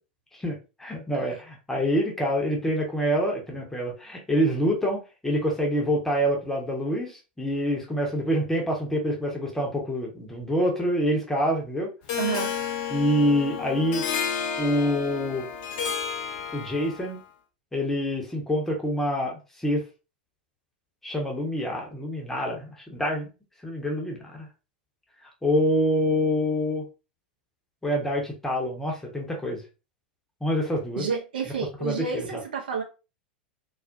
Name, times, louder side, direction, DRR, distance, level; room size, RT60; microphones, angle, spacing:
voice 1, 0.3-11.9 12.9-14.0 14.6-15.5 16.5-17.2 17.7-19.8 21.0-23.3 23.6-24.5 25.4-26.8 27.8-29.6 30.4-31.0 31.8-32.4, equal, 5° left, 0.7 m, -26 dB
Harp, 12.1-17.1, left 7 dB, 45° left, 0.5 m, -31 dB
voice 2, 12.2-12.5 31.0-32.8, right 6 dB, 65° right, 0.6 m, -30 dB
2.4 x 2.1 x 2.5 m
figure-of-eight pair, 90°, 5 cm